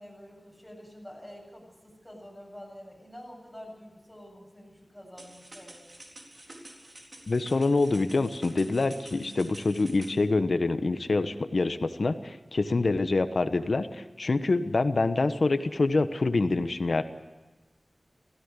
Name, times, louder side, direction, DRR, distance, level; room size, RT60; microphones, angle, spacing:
voice 1, 0.0-6.0, equal, 10° left, -1 dB, 7.6 m, -47 dB
sound 1, 5.2-10.2, right 1 dB, 50° right, 4.0 m, -49 dB
voice 2, 7.3-17.0, left 3 dB, 75° left, 10 dB, 1.1 m, -26 dB
17.0 x 16.0 x 9.8 m, 1.2 s
wide cardioid pair, 50°, 0 cm